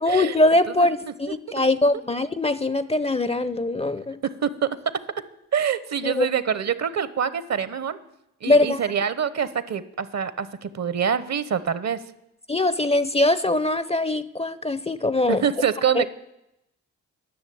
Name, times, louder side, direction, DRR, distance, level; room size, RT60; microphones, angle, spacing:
voice 1, 0.0-4.2 6.0-6.3 8.5-8.9 12.5-15.4 15.9-16.0, left 2 dB, 20° left, 16 dB, 0.6 m, -22 dB
voice 2, 5.5-8.0 8.4-12.0 15.3-16.1, right 7 dB, 50° right, 15 dB, 0.9 m, -25 dB
10.5 x 6.5 x 9.2 m, 0.85 s
supercardioid pair, 45°, 34 cm